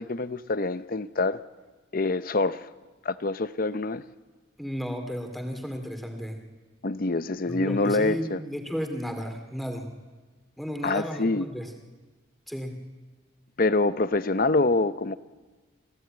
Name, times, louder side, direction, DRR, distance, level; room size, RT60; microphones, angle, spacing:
voice 1, 0.0-1.4 1.9-2.6 3.0-4.0 6.8-8.4 10.8-11.5 13.6-15.2, left 3 dB, 45° left, 14 dB, 0.7 m, -25 dB
voice 2, 4.6-6.4 7.5-9.9 10.6-11.7 12.5-12.7, equal, ahead, 5 dB, 2.4 m, -33 dB
27.0 x 16.0 x 8.9 m, 1.3 s
head